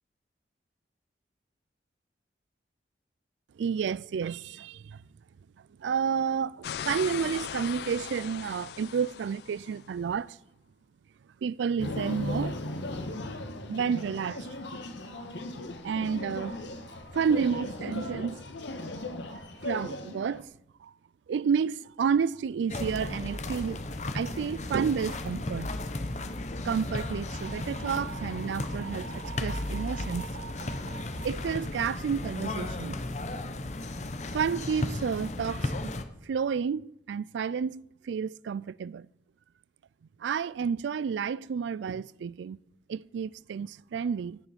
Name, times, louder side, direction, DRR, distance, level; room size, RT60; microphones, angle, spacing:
voice 1, 3.6-5.0 5.8-10.4 11.4-12.6 13.7-14.5 15.3-15.4 15.8-16.6 16.9-18.4 18.9-20.5 20.8-20.9 21.3-23.8 24.1-25.8 26.6-33.0 34.3-35.9 36.2-39.1 40.2-42.6 42.9-44.4, right 6 dB, 80° right, 0.3 m, -31 dB
sound 1, 6.6-9.9, left 8 dB, 60° left, 0.3 m, -39 dB
sound 2, 11.8-20.4, left 2 dB, 80° left, 1.4 m, -37 dB
sound 3, 22.7-36.0, left 2 dB, 40° left, 0.8 m, -35 dB
16.0 x 6.9 x 5.8 m
head